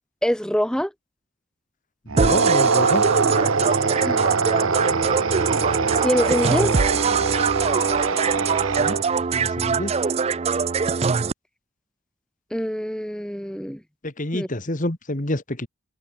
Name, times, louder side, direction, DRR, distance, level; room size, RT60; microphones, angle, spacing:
voice 1, 0.2-0.9 4.0-4.2 6.0-6.8 12.5-13.8 14.3-14.5, equal, 5° left, 1.3 m, -24 dB
voice 2, 2.1-3.0 8.8-9.0 9.3-9.9 14.0-15.7, left 1 dB, 40° left, 1.9 m, -28 dB
sound 1, 2.1-9.3, right 4 dB, 70° right, 1.2 m, -23 dB
sound 2, 2.2-11.3, right 5 dB, 30° right, 0.4 m, -23 dB
head